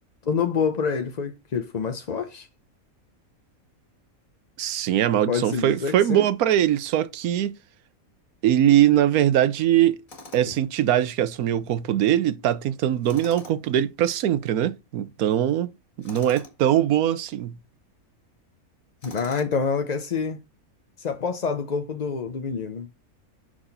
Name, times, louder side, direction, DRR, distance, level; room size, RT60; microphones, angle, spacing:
voice 1, 0.2-2.5 5.3-6.2 19.0-20.4 21.0-22.9, left 5 dB, 45° left, 0.6 m, -27 dB
voice 2, 4.6-7.5 8.4-10.0 10.3-15.7 16.0-17.5, right 11 dB, 80° right, 1.2 m, -21 dB
Tools, 10.1-10.7 13.0-13.8 16.0-16.6 19.0-19.7, left 3 dB, 65° left, 2.3 m, -44 dB
6.3 x 6.2 x 4.0 m
omnidirectional pair, 1.5 m